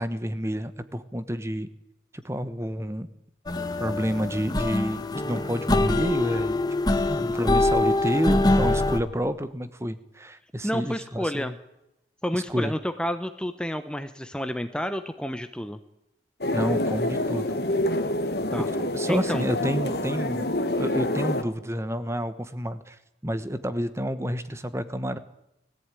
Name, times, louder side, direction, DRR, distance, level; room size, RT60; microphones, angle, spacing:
voice 1, 0.0-1.7 2.2-3.1 3.8-6.6 6.8-11.5 12.3-12.7 16.5-17.6 18.9-25.2, equal, 15° right, 12 dB, 1.1 m, -29 dB
sound 1, 3.5-9.0, left 2 dB, 20° left, 1.2 m, -24 dB
voice 2, 10.6-11.6 12.2-15.8 18.5-18.7 19.1-19.4, equal, 5° left, 8 dB, 0.9 m, -30 dB
sound 2, 16.4-21.4, left 1 dB, 55° left, 1.5 m, -27 dB
21.0 x 15.0 x 9.2 m, 0.88 s
head